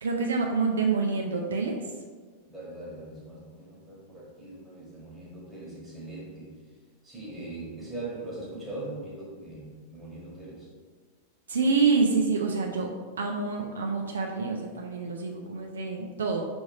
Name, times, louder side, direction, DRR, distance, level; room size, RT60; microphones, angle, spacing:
voice 1, 0.0-1.8 11.5-12.9 13.2-16.4, right 4 dB, 70° right, 2 dB, 0.3 m, -27 dB
voice 2, 2.5-6.6 7.0-10.7, right 2 dB, 10° right, -6 dB, 1.2 m, -41 dB
4.7 x 2.6 x 3.1 m, 1.5 s
figure-of-eight pair, 90°, 0 cm